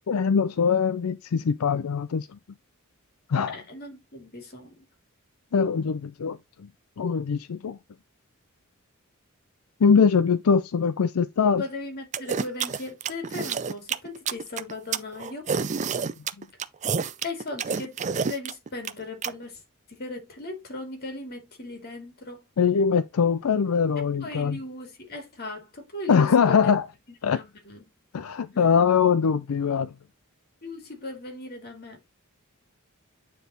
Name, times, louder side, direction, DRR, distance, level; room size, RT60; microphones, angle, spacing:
voice 1, 0.1-2.3 3.3-3.6 5.5-6.7 7.0-7.8 9.8-11.6 16.4-16.5 22.6-24.6 26.1-26.9 27.2-27.4 28.1-29.9, left 6 dB, 85° left, 0.5 m, -22 dB
voice 2, 3.5-4.7 11.6-15.6 17.2-19.6 19.9-22.5 24.0-26.7 27.3-27.8 28.5-28.8 30.6-32.0, left 2 dB, 50° left, 2.4 m, -38 dB
sound 1, 12.1-19.3, right 6 dB, 35° right, 0.5 m, -28 dB
9.2 x 3.6 x 4.0 m
head